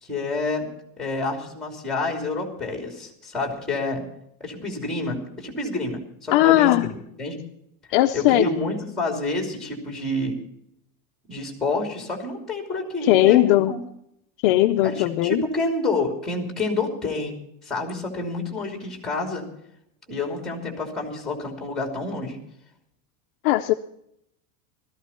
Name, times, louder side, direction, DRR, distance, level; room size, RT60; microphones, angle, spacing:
voice 1, 0.0-0.7 1.0-4.0 4.4-7.4 8.1-10.4 11.3-13.8 14.8-19.4 20.1-22.4, left 2 dB, ahead, 2.9 m, -28 dB
voice 2, 6.3-6.9 7.9-8.5 13.0-13.8 14.4-15.4 23.4-23.7, left 16 dB, 45° left, 0.5 m, -18 dB
17.0 x 14.0 x 4.4 m
supercardioid pair, 175°, 39 cm